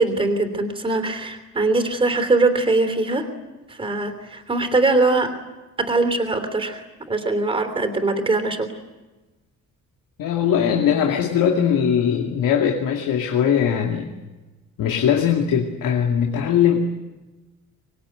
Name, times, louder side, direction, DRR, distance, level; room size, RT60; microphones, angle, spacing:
voice 1, 0.0-3.3 3.7-5.4 5.8-8.7, right 3 dB, 15° right, 7 dB, 3.1 m, -21 dB
voice 2, 10.2-14.1 14.8-16.9, left 8 dB, 80° left, 2 dB, 2.5 m, -20 dB
25.0 x 21.0 x 9.3 m, 1.2 s
cardioid pair, 165°, 33 cm